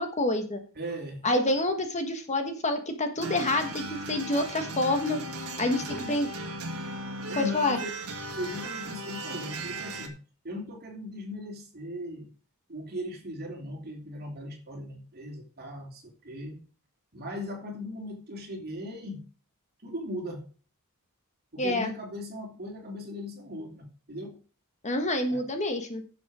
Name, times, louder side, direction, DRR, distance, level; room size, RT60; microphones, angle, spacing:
voice 1, 0.0-0.6 1.2-5.2 5.6-5.8 6.1-6.3 7.3-7.8 21.6-21.9 24.8-26.0, left 1 dB, 30° left, 6 dB, 1.3 m, -27 dB
voice 2, 0.7-1.2 5.7-6.2 7.3-7.9 8.4-10.2 10.4-12.3 12.7-16.6 17.1-19.2 19.8-20.4 21.5-24.4 25.3-25.4, left 1 dB, 45° right, 1 dB, 2.9 m, -38 dB
sound 1, 3.2-10.1, right 2 dB, 70° right, 1.8 m, -37 dB
11.0 x 7.1 x 4.8 m, 0.38 s
head